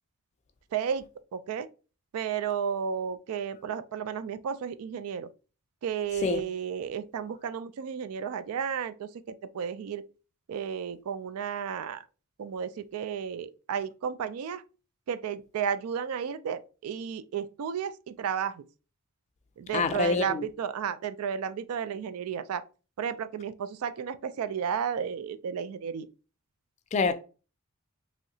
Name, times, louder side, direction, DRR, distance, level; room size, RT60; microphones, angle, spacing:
voice 1, 0.7-1.0 1.3-1.7 2.1-5.3 5.8-10.0 10.5-12.0 12.4-14.6 15.1-18.6 19.6-22.6 23.0-26.1, right 7 dB, 85° right, 0.3 m, -33 dB
voice 2, 19.7-20.4 26.9-27.1, left 4 dB, 30° left, 0.3 m, -26 dB
3.1 x 2.8 x 2.6 m
head